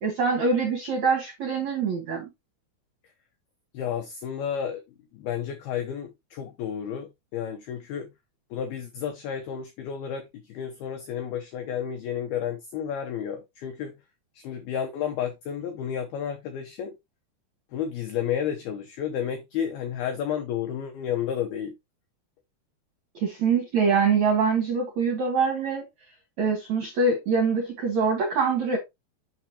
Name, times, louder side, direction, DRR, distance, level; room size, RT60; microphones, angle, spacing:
voice 1, 0.0-2.3 23.2-25.8 26.4-28.8, right 5 dB, 80° right, 1.6 m, -24 dB
voice 2, 3.7-4.8 5.1-8.1 8.5-14.0 14.3-17.0 17.7-21.7, left 8 dB, 85° left, 2.1 m, -31 dB
8.0 x 5.5 x 2.8 m
omnidirectional pair, 5.5 m